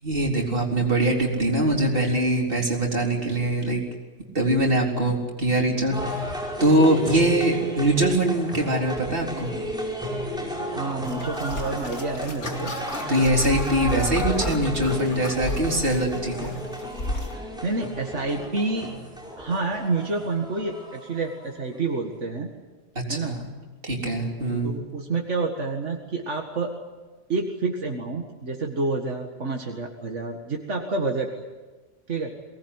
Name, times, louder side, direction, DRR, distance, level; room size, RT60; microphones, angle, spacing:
voice 1, 0.0-3.8 4.3-6.3 6.6-9.5 13.1-16.5 23.1-23.5 23.8-24.8, right 1 dB, 50° right, -1 dB, 4.4 m, -23 dB
sound 1, 5.9-22.0, equal, 5° right, 5.6 m, -33 dB
voice 2, 10.7-12.7 17.6-18.9 19.4-22.5 23.1-23.4 24.6-26.7 27.3-31.4 32.1-32.3, right 3 dB, 80° right, 2 dB, 2.2 m, -28 dB
sound 2, 11.0-17.3, left 1 dB, 85° left, 2.9 m, -33 dB
23.5 x 19.0 x 9.9 m, 1.3 s
omnidirectional pair, 1.2 m